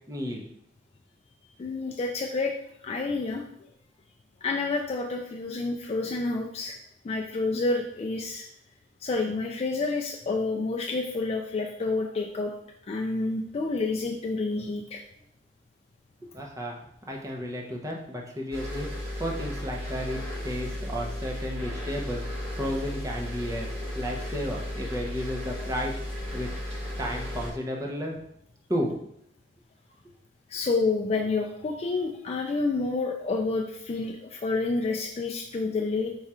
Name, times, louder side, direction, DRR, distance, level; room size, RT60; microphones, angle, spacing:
voice 1, 0.1-0.4 16.2-16.8 17.1-18.9 19.2-22.2 22.5-23.7 23.9-25.9 26.3-26.5 27.0-28.2 28.7-28.9, equal, 20° right, 0 dB, 0.7 m, -32 dB
voice 2, 1.6-2.5 2.8-3.4 4.4-6.7 7.0-8.5 9.0-12.5 12.9-15.0 30.5-36.1, left 3 dB, 35° left, 1 dB, 0.3 m, -29 dB
sound 1, 18.5-27.5, left 1 dB, 35° right, 1.0 m, -35 dB
4.7 x 2.4 x 4.2 m, 0.71 s
head